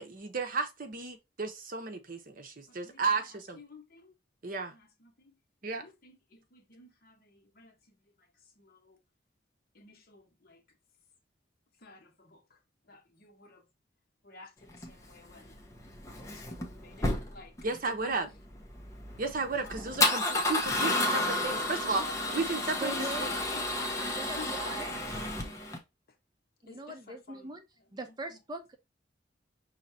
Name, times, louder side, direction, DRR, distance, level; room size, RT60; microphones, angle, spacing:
voice 1, 0.0-3.6 4.4-4.7 5.6-5.8 17.6-18.3 19.2-22.0 22.3-22.9, right 4 dB, 50° right, 0.9 m, -33 dB
voice 2, 2.7-3.3 3.5-4.1 4.7-5.4 5.7-9.0 9.7-10.6 11.8-13.7 14.2-15.6 16.1-17.6 17.8-18.2 19.6-20.0 21.9-25.5 26.7-28.4, left 3 dB, 55° left, 1.1 m, -52 dB
Male speech man speaking / Car / Engine starting, 14.7-25.8, left 2 dB, 20° left, 0.9 m, -32 dB
voice 3, 22.8-23.4 23.8-24.9 26.6-27.6 27.9-28.8, right 2 dB, 25° right, 0.6 m, -41 dB
5.6 x 3.2 x 2.7 m
head